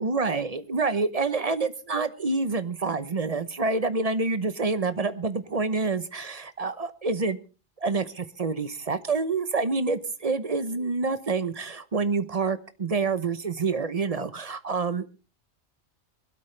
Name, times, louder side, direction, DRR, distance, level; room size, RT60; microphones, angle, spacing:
voice 1, 0.0-7.4 7.8-15.2, right 4 dB, 35° right, 12 dB, 0.8 m, -27 dB
22.0 x 12.5 x 3.3 m, 0.33 s
omnidirectional pair, 1.2 m